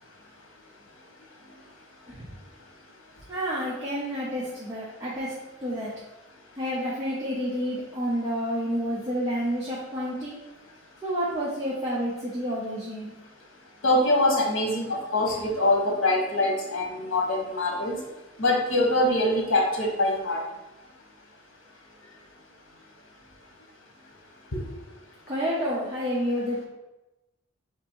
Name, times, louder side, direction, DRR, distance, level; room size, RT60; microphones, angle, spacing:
voice 1, 3.3-5.3 5.6-5.9 6.6-10.3 11.0-13.1 25.3-26.7, equal, 15° right, -8 dB, 0.7 m, -29 dB
voice 2, 13.8-18.0 18.4-20.4 24.5-24.6, left 1 dB, 85° left, 0 dB, 1.0 m, -24 dB
3.5 x 2.9 x 4.4 m, 1.0 s
head